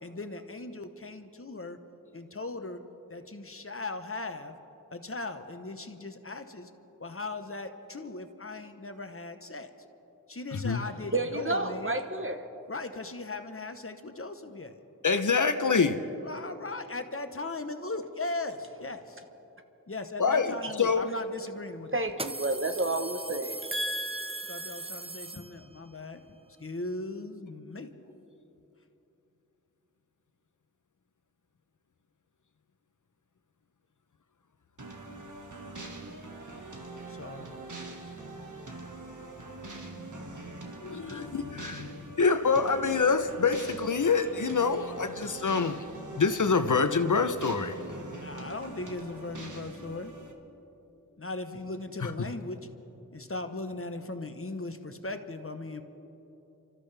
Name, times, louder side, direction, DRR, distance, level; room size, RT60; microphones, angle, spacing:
voice 1, 0.0-1.8 2.1-2.8 3.1-4.5 4.9-6.7 7.0-9.7 10.3-11.9 12.7-14.8 16.2-19.2 19.9-22.0 24.5-27.9 37.1-37.5 48.2-50.1 51.2-52.6 53.1-55.8, left 2 dB, 40° left, 8 dB, 1.0 m, -38 dB
voice 2, 10.5-10.8 15.0-16.0 20.2-21.1 40.8-45.8 46.2-47.8 52.0-52.3, left 5 dB, 60° left, 9 dB, 0.8 m, -26 dB
voice 3, 11.1-12.5 20.6-20.7 21.9-24.9, right 2 dB, 40° right, 6 dB, 1.1 m, -31 dB
sound 1, 21.0-21.1 22.1-25.9, right 2 dB, 15° right, 0.6 m, -39 dB
sound 2, 34.8-50.3, right 2 dB, 60° right, 1.8 m, -43 dB
30.0 x 13.5 x 3.4 m, 3.0 s
wide cardioid pair, 45°, 34 cm